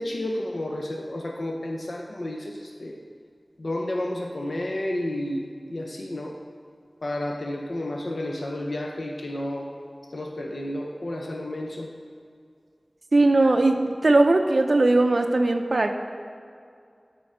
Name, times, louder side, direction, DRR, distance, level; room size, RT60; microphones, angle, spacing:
voice 1, 0.0-3.0 3.6-6.4 7.0-9.7 10.1-11.9, left 1 dB, 70° left, 1 dB, 0.6 m, -31 dB
voice 2, 13.1-15.9, right 2 dB, 75° right, 5 dB, 0.5 m, -19 dB
12.5 x 4.4 x 4.9 m, 2.3 s
wide cardioid pair, 60°, 0 cm